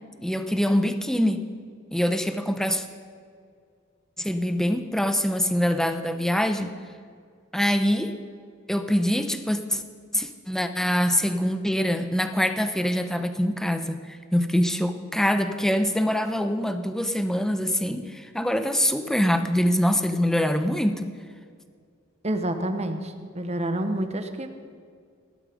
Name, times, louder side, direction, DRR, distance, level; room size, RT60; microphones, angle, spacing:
voice 1, 0.2-1.4 1.9-2.9 4.2-6.7 7.5-8.1 8.7-9.8 10.1-21.1, equal, ahead, 8 dB, 0.8 m, -24 dB
voice 2, 22.2-24.5, right 1 dB, 30° right, 7 dB, 1.2 m, -28 dB
17.5 x 11.5 x 5.2 m, 2.1 s
head